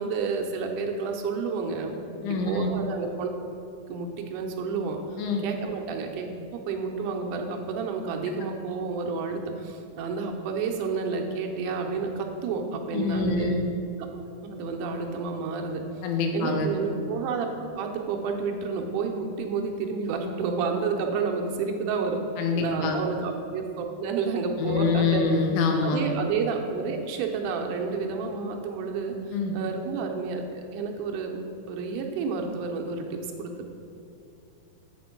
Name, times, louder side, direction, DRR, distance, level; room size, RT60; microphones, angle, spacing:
voice 1, 0.0-1.9 2.3-3.3 3.9-13.6 14.4-15.8 16.3-17.5 17.8-22.2 22.6-25.3 25.8-31.4 31.7-33.7, right 5 dB, 90° right, 2 dB, 2.2 m, -30 dB
voice 2, 2.2-2.7 5.2-5.4 12.9-13.7 16.0-16.7 22.4-23.0 24.6-26.0 29.3-29.6, left 4 dB, 80° left, 3 dB, 2.2 m, -25 dB
7.6 x 4.3 x 5.8 m, 2.5 s
omnidirectional pair, 3.6 m